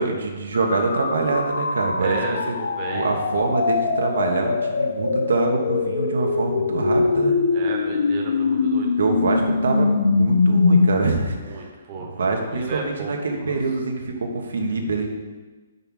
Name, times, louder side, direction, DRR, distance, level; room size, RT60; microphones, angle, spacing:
voice 1, 0.0-2.2 2.5-2.6 2.9-7.4 9.0-11.7 12.0-15.1, right 3 dB, 85° right, 2 dB, 1.2 m, -25 dB
sound 1, 0.5-10.9, left 4 dB, 80° left, 0.6 m, -22 dB
voice 2, 2.0-3.1 7.5-8.9 11.4-13.5, right 3 dB, 30° right, -1 dB, 1.0 m, -33 dB
5.5 x 4.8 x 5.7 m, 1.3 s
hypercardioid pair, 165°, 0 cm